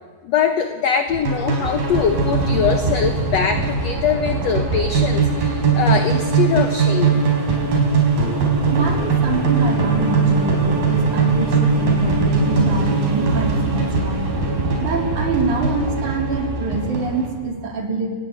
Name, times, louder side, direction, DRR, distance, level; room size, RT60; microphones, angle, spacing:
voice 1, 0.2-7.2, left 7 dB, 65° left, 7 dB, 1.8 m, -22 dB
sound 1, 1.1-17.3, right 4 dB, 85° right, 6.3 m, -20 dB
voice 2, 8.7-14.3 14.8-18.1, right 3 dB, 55° right, 2 dB, 4.5 m, -25 dB
29.0 x 19.5 x 8.1 m, 1.5 s
omnidirectional pair, 4.1 m